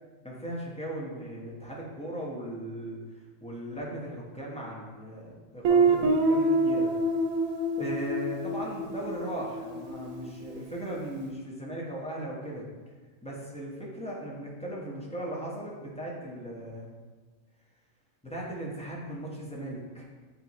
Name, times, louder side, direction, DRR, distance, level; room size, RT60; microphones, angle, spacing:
voice 1, 0.2-3.0 3.4-6.9 7.8-12.6 13.2-16.9 18.2-20.0, right 1 dB, 5° left, -4 dB, 1.0 m, -37 dB
Guitar, 5.6-10.3, right 2 dB, 80° right, 1.1 m, -26 dB
8.9 x 3.5 x 3.1 m, 1.4 s
omnidirectional pair, 1.4 m